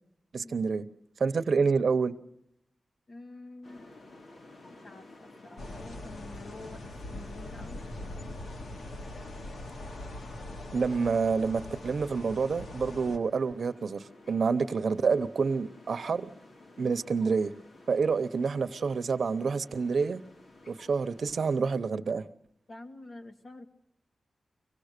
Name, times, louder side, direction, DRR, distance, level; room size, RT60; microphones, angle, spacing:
voice 1, 0.3-0.9 1.2-2.1 10.7-16.3 16.8-17.5 17.9-20.2 20.7-22.3, right 5 dB, 70° right, 0.9 m, -28 dB
voice 2, 3.1-3.9 4.8-7.9 16.8-17.0 22.7-23.7, left 2 dB, 45° left, 2.2 m, -48 dB
sound 1, 3.6-21.6, left 2 dB, 60° left, 2.7 m, -54 dB
sound 2, 5.6-13.2, left 2 dB, 75° left, 2.1 m, -42 dB
25.0 x 18.0 x 6.7 m
wide cardioid pair, 105°, 0 cm